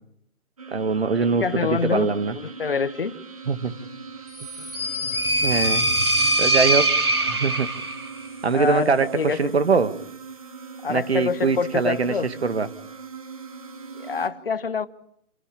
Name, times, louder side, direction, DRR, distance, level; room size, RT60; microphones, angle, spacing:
sound 1, 0.6-14.3, right 5 dB, 25° right, 1.4 m, -41 dB
voice 1, 0.7-2.3 3.5-3.7 4.6-4.7 5.0-5.9 6.4-6.9 7.2-7.7 8.4-9.9 10.9-12.1 12.4-12.7, right 4 dB, 45° right, 11 dB, 1.7 m, -23 dB
voice 2, 1.3-3.2 8.5-9.5 10.8-12.3 13.9-14.9, left 5 dB, 40° left, 14 dB, 1.1 m, -26 dB
sound 2, 4.4-8.1, right 1 dB, 90° right, 5.5 m, -22 dB
29.0 x 16.0 x 9.0 m, 0.75 s
hypercardioid pair, 170°, 44 cm